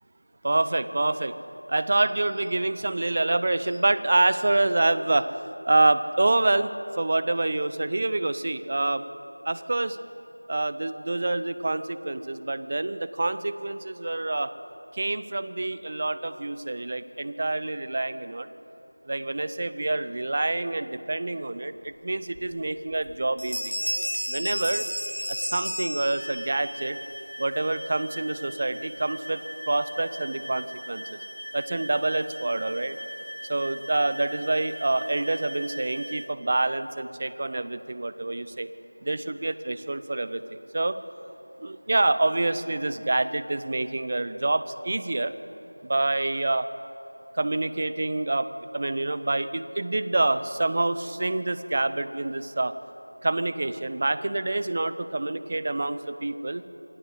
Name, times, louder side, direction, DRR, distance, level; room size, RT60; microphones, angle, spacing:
voice 1, 0.4-1.4 1.7-5.3 5.7-9.0 9.4-10.0 10.5-14.5 14.9-18.5 19.1-23.7 24.3-24.9 25.3-27.0 27.4-31.2 31.5-33.0 33.5-38.7 39.0-41.0 41.6-45.3 45.8-46.7 47.3-48.5 48.7-52.7 53.2-56.6, right 2 dB, 20° right, 13 dB, 0.7 m, -27 dB
sound 1, 22.3-22.4 22.9-23.1 23.4-26.5, equal, 90° left, 7.7 m, -31 dB
sound 2, 26.2-36.3, equal, 65° right, 2.4 m, -40 dB
26.5 x 25.0 x 7.9 m, 3.0 s
figure-of-eight pair, 175°, 0 cm